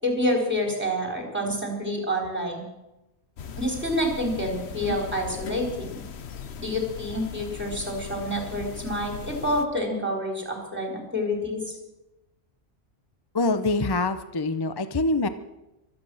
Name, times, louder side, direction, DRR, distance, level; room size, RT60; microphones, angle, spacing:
voice 1, 0.0-2.6 3.6-6.0 6.6-11.8, equal, 10° right, 1 dB, 4.3 m, -28 dB
sound 1, 3.4-9.7, left 7 dB, 70° left, 1.2 m, -38 dB
voice 2, 13.3-15.3, left 2 dB, 25° left, 11 dB, 0.7 m, -25 dB
24.5 x 8.9 x 6.3 m, 0.96 s
omnidirectional pair, 1.1 m